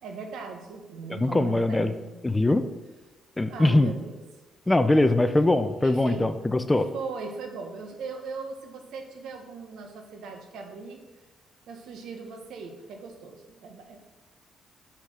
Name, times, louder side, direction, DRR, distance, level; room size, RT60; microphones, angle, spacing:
voice 1, 0.0-2.2 3.5-4.2 5.8-6.3 6.9-11.0 11.7-14.0, right 4 dB, 80° right, 4 dB, 1.5 m, -39 dB
voice 2, 1.1-1.9 2.2-2.6 3.4-3.9 4.7-6.9, left 2 dB, 15° left, 10 dB, 0.6 m, -22 dB
7.3 x 5.9 x 6.6 m, 1.1 s
cardioid pair, 100°, 0 cm